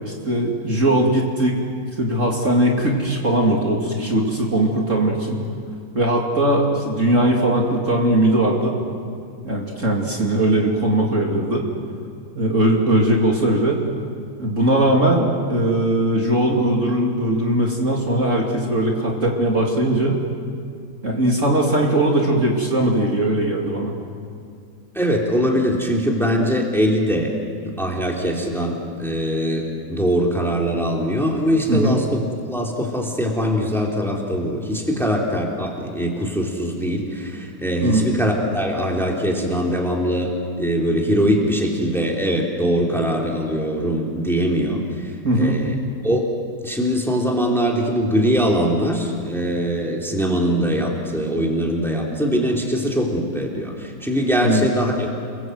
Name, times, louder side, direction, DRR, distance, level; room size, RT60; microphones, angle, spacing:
voice 1, 0.0-1.6 2.0-5.4 5.9-8.7 9.4-11.7 12.3-13.8 14.4-20.2 21.0-23.9 31.7-32.0 37.8-38.1 45.2-45.6 54.4-54.7, right 1 dB, 40° right, -1 dB, 2.9 m, -19 dB
voice 2, 24.9-27.3 27.8-32.2 32.5-45.7 46.0-46.3 46.6-55.1, equal, ahead, -1 dB, 3.1 m, -22 dB
29.5 x 21.5 x 7.9 m, 2.4 s
omnidirectional pair, 2.0 m